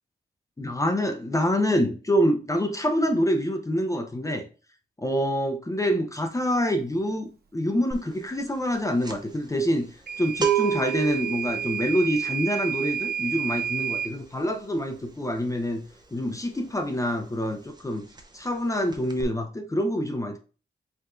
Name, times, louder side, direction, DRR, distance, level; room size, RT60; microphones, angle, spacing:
voice 1, 0.6-4.5 5.0-9.9 10.2-15.8 16.1-18.1 18.3-20.4, equal, 15° left, 0.6 m, -26 dB
sound 1, 7.9-8.2 8.4-17.0 17.3-17.5 17.8-18.6 18.9-19.2, right 8 dB, 20° right, 0.7 m, -31 dB
Microwave oven / Alarm, 10.1-14.2, right 8 dB, 60° right, 1.1 m, -31 dB
4.7 x 3.5 x 2.5 m
wide cardioid pair, 100°, 19 cm